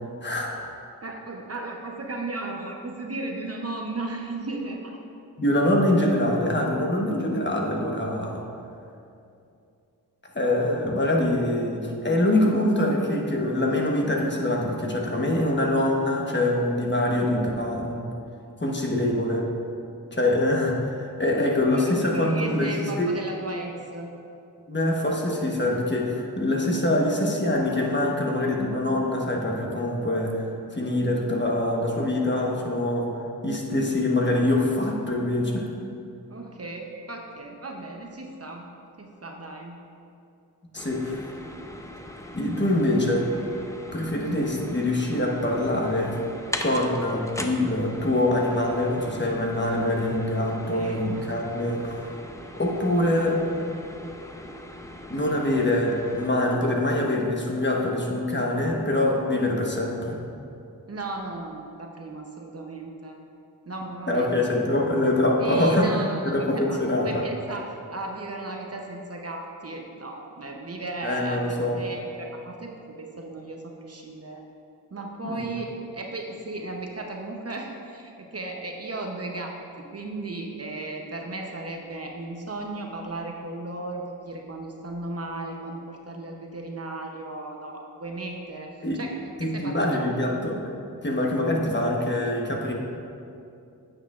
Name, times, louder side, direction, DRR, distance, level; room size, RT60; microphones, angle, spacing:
voice 1, 0.2-0.5 5.4-8.4 10.3-18.1 18.6-19.5 20.1-23.1 24.7-30.5 30.7-35.7 40.7-41.3 42.3-43.3 43.9-46.1 46.6-52.1 52.5-53.4 55.1-60.2 64.1-65.9 66.2-67.2 71.0-71.8 75.2-75.5 88.8-89.0 89.4-90.7 91.0-92.7, left 1 dB, 25° left, -1 dB, 1.2 m, -24 dB
voice 2, 1.0-5.0 21.7-24.1 36.3-38.6 39.0-39.8 41.0-41.1 50.7-51.0 60.9-63.2 63.7-64.3 65.4-66.8 67.0-74.4 74.9-79.6 79.9-90.0, right 2 dB, 35° right, 1 dB, 0.8 m, -35 dB
sound 1, 40.8-56.3, left 1 dB, 10° left, 0.6 m, -40 dB
9.1 x 6.6 x 2.5 m, 2.6 s
cardioid pair, 45°, 40 cm